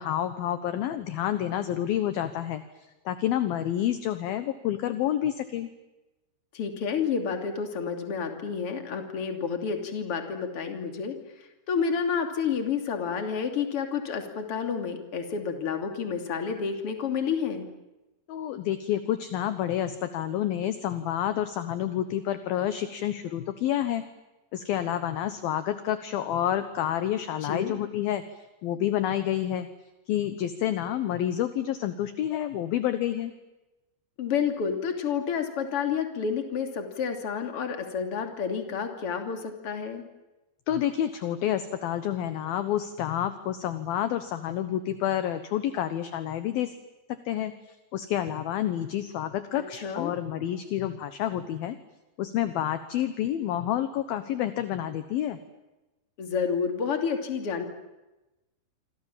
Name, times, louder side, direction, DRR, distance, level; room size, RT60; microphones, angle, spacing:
voice 1, 0.0-5.7 18.3-24.0 24.5-29.7 30.1-33.3 40.7-46.7 47.3-51.8 52.2-55.4, left 11 dB, 70° left, 11 dB, 2.7 m, -29 dB
voice 2, 6.5-17.7 27.4-27.7 34.2-40.0 49.5-50.1 56.2-57.7, left 6 dB, 35° left, 5 dB, 3.2 m, -30 dB
27.0 x 26.5 x 7.5 m, 1.0 s
omnidirectional pair, 5.1 m